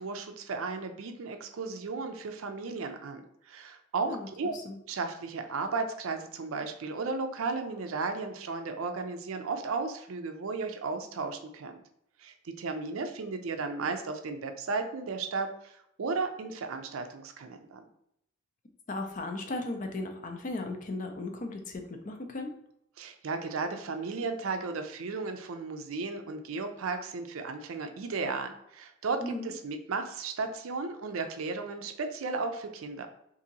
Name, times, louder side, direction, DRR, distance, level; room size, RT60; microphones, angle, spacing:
voice 1, 0.0-4.5 4.9-11.8 12.2-17.9 23.0-33.1, right 4 dB, 70° right, 7 dB, 0.4 m, -35 dB
voice 2, 4.0-4.8 18.9-22.5 29.2-29.5, left 2 dB, 35° left, 4 dB, 0.4 m, -36 dB
2.8 x 2.6 x 3.8 m, 0.76 s
head